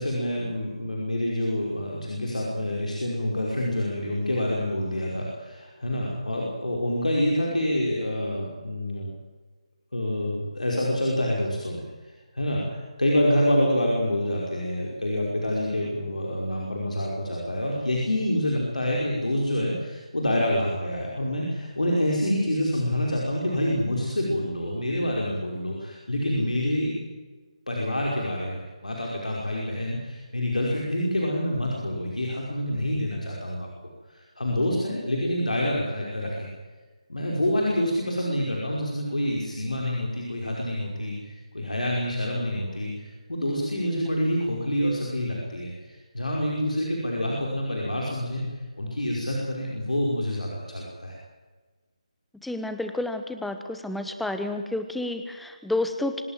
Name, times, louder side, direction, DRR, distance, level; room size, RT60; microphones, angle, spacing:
voice 1, 0.0-9.1 9.9-26.9 27.7-33.7 34.1-36.5 37.1-48.4 48.8-51.2, left 1 dB, 90° left, -2 dB, 5.8 m, -27 dB
voice 2, 52.4-56.2, left 2 dB, ahead, 8 dB, 1.1 m, -30 dB
25.0 x 18.5 x 7.7 m, 1.3 s
figure-of-eight pair, 160°, 4 cm